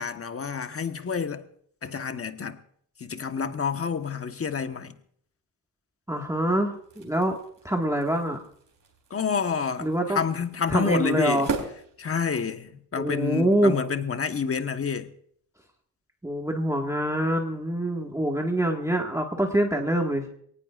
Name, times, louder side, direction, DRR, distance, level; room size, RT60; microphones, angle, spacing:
voice 1, 0.0-1.4 1.8-2.6 3.0-4.9 9.1-11.5 12.0-15.1, left 6 dB, 35° left, 1.2 m, -28 dB
voice 2, 6.1-7.4 7.6-8.4 9.8-10.2 10.7-11.5 13.0-13.8 16.2-20.3, right 1 dB, 10° right, 1.8 m, -25 dB
sound 1, 6.7-12.7, right 4 dB, 55° right, 3.7 m, -39 dB
22.5 x 18.5 x 2.5 m
cardioid pair, 95°, 37 cm